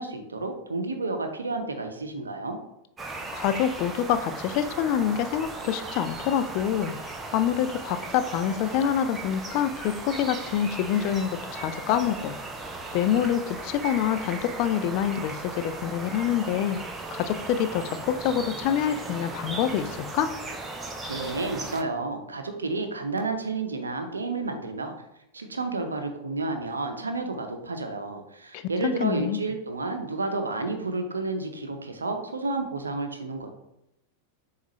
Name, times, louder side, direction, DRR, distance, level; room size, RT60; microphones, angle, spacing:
voice 1, 0.0-2.6 21.1-24.9 25.3-33.5, right 3 dB, 75° right, 5 dB, 0.6 m, -31 dB
sound 1, 3.0-21.8, right 3 dB, 15° right, 0.5 m, -37 dB
voice 2, 3.3-7.0 7.3-12.3 12.9-16.8 17.1-20.3 28.5-29.4, left 9 dB, 45° left, 10 dB, 0.3 m, -26 dB
7.1 x 2.4 x 3.0 m, 0.85 s
figure-of-eight pair, 90°, 0 cm